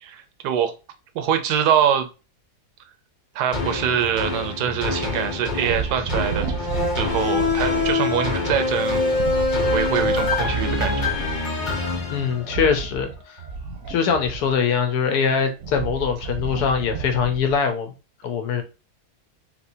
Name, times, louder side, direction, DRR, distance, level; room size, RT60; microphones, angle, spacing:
voice 1, 0.0-0.7 1.1-2.1 3.3-6.6 7.0-9.0 9.7-11.1, right 9 dB, 80° right, 1.2 m, -24 dB
sound 1, 3.5-12.9 13.4-13.5, left 3 dB, 35° left, 0.9 m, -25 dB
sound 2, 5.6-7.9 9.1-11.4 12.4-14.7 15.3-17.7, right 5 dB, 60° right, 0.9 m, -31 dB
voice 2, 12.1-13.4 13.9-17.9 18.2-18.6, left 6 dB, 80° left, 1.2 m, -22 dB
3.5 x 2.9 x 2.6 m
omnidirectional pair, 1.7 m